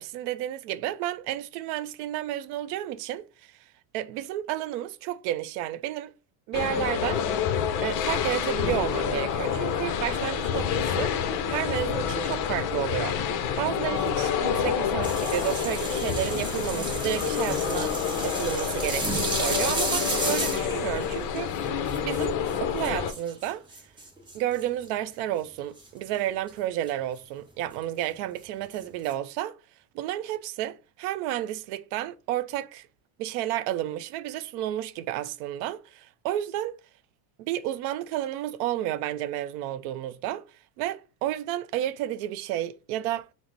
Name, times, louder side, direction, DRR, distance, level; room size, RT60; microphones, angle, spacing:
voice 1, 0.0-3.6 3.9-6.1 6.5-7.3 7.8-11.1 11.5-13.2 13.6-17.9 18.2-23.6 24.3-29.6 29.9-32.9 33.2-36.8 37.4-40.4 40.8-43.3, right 13 dB, 85° right, 0.5 m, -31 dB
sound 1, 6.5-23.1, left 7 dB, 45° left, 0.5 m, -28 dB
sound 2, 15.0-24.9 25.8-25.9 26.3-26.5 26.9-27.0 27.8-27.9 28.8-29.1, right 2 dB, 10° right, 0.7 m, -33 dB
4.0 x 2.0 x 4.5 m
cardioid pair, 145°, 45 cm